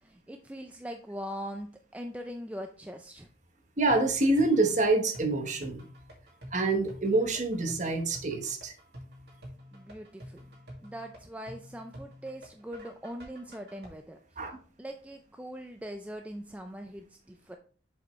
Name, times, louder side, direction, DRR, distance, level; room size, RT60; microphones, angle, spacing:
voice 1, 0.0-3.3 9.7-10.5 10.8-14.5 14.8-17.6, equal, 10° right, 4 dB, 0.4 m, -41 dB
voice 2, 3.8-5.8 6.5-8.7 14.4-14.6, right 2 dB, 40° right, 5 dB, 1.1 m, -26 dB
sound 1, 3.9-13.9, equal, 65° right, 2.0 m, -48 dB
7.0 x 5.2 x 3.1 m, 0.41 s
head